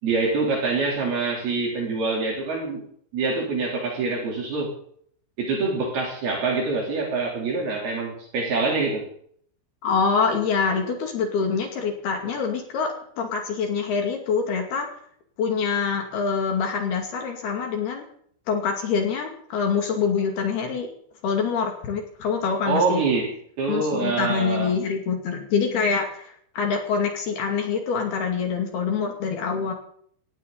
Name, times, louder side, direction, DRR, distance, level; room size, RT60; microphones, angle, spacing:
voice 1, 0.0-2.8 3.1-4.7 5.4-9.1 22.6-23.3 23.6-24.7, right 3 dB, 60° right, 0 dB, 5.1 m, -25 dB
voice 2, 9.8-14.9 15.4-18.0 18.5-20.9 21.2-23.1 23.7-29.7, left 5 dB, 60° left, 3 dB, 4.0 m, -25 dB
19.0 x 18.0 x 3.9 m, 0.62 s
omnidirectional pair, 5.2 m